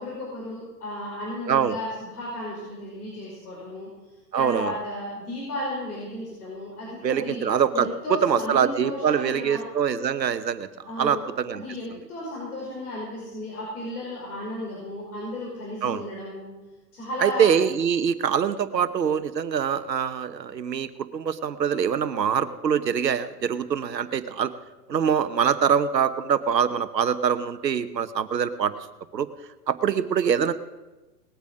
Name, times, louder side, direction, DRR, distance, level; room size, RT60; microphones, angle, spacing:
voice 1, 0.0-3.9 4.4-7.4 7.7-9.7 10.9-11.3 11.5-16.5 16.9-17.5, left 1 dB, 65° left, -5 dB, 5.7 m, -34 dB
voice 2, 4.3-4.7 7.0-7.9 8.2-10.7 11.0-11.6 15.8-16.0 17.2-24.5 24.9-28.7 29.1-29.3 29.7-30.5, right 7 dB, 85° right, 13 dB, 1.1 m, -24 dB
19.5 x 8.4 x 6.3 m, 1.1 s
figure-of-eight pair, 110°, 49 cm